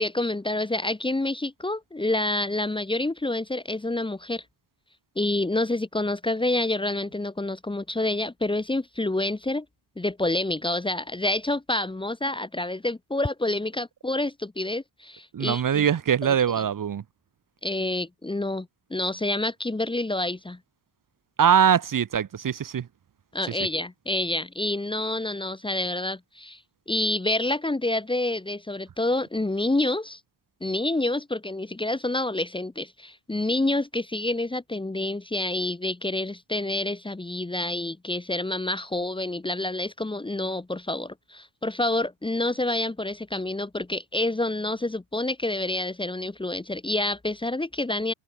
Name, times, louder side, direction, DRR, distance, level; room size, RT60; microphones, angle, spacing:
voice 1, 0.0-4.4 5.2-9.7 10.0-15.9 16.2-16.3 17.6-20.6 23.3-26.6 26.9-30.2 30.6-48.1, left 2 dB, 10° left, 1.9 m, -28 dB
voice 2, 15.3-17.0 21.4-22.9, right 8 dB, 45° right, 2.2 m, -22 dB
open air
cardioid pair, 150°, 45 cm